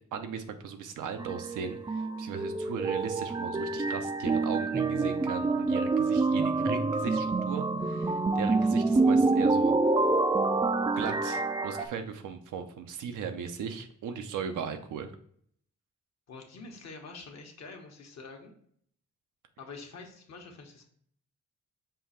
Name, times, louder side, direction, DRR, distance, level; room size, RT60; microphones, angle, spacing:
voice 1, 0.1-9.7 11.0-15.1, right 6 dB, 85° right, 7 dB, 0.6 m, -37 dB
sound 1, 1.2-11.9, right 3 dB, 15° right, 0.3 m, -27 dB
voice 2, 8.4-8.8 16.3-18.5 19.6-20.8, left 4 dB, 60° left, 2 dB, 1.1 m, -46 dB
5.5 x 2.4 x 4.1 m, 0.64 s
cardioid pair, 75°, 30 cm